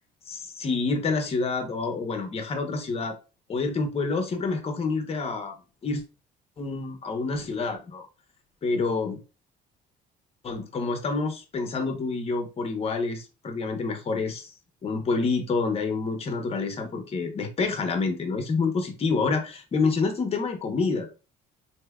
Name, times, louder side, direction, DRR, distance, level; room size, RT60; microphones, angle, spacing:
voice 1, 0.3-3.2 3.5-5.6 5.8-6.0 6.6-8.1 8.6-9.2 10.4-14.5 14.8-21.1, left 4 dB, 35° left, 5 dB, 0.8 m, -28 dB
3.3 x 2.8 x 2.3 m, 0.30 s
cardioid pair, 110°, 17 cm